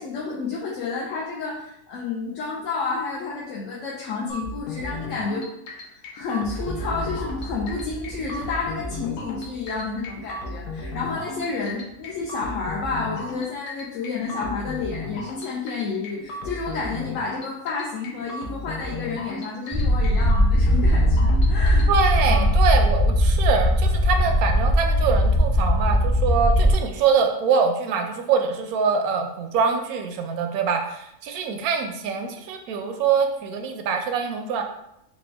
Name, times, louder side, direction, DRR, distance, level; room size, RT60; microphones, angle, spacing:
voice 1, 0.0-5.5 5.9-21.9 22.2-22.5, left 4 dB, 65° left, -4 dB, 0.9 m, -30 dB
sound 1, 4.3-22.4, left 2 dB, 90° left, 1.2 m, -35 dB
sound 2, 6.5-13.2, right 1 dB, 35° left, 1.0 m, -39 dB
sound 3, 19.7-26.7, equal, 30° right, 0.3 m, -19 dB
voice 2, 21.9-34.6, right 6 dB, 75° right, 5 dB, 1.0 m, -24 dB
4.2 x 2.2 x 3.3 m, 0.81 s
omnidirectional pair, 1.6 m